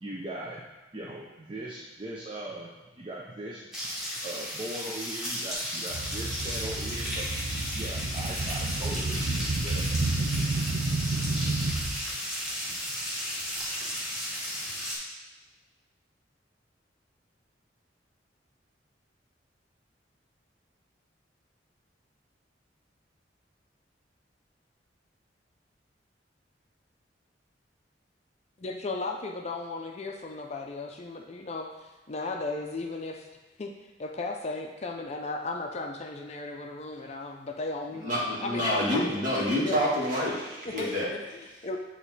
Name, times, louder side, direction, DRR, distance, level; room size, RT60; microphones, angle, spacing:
voice 1, 0.0-0.6 0.9-3.7 4.2-9.9, right 1 dB, 30° right, -3 dB, 0.6 m, -39 dB
sound 1, 3.7-15.0, equal, 5° right, 1.6 m, -34 dB
sound 2, 5.9-12.1 12.7-12.9 13.8-13.9 14.7-14.8, right 2 dB, 75° right, 0.7 m, -30 dB
voice 2, 28.6-33.3 33.6-33.7 34.0-38.1 38.4-39.1 39.6-39.8 40.6-41.8, left 3 dB, 35° left, 3 dB, 0.5 m, -35 dB
voice 3, 38.0-41.1, equal, 45° right, -6 dB, 1.9 m, -28 dB
8.9 x 3.0 x 4.1 m, 1.2 s
head